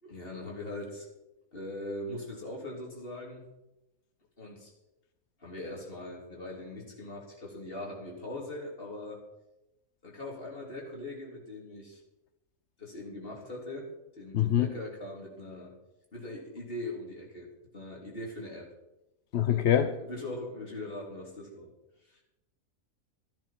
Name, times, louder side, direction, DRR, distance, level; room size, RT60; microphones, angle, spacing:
voice 1, 0.0-1.1 1.5-3.5 4.4-4.7 5.4-9.2 10.0-12.0 12.8-15.7 16.1-17.5 17.7-18.7 19.5-21.7 22.0-22.2, left 1 dB, 35° left, -3 dB, 4.0 m, -41 dB
voice 2, 14.3-14.7 19.3-19.9, left 10 dB, 55° left, 9 dB, 0.9 m, -24 dB
14.5 x 10.5 x 6.0 m, 0.95 s
omnidirectional pair, 1.7 m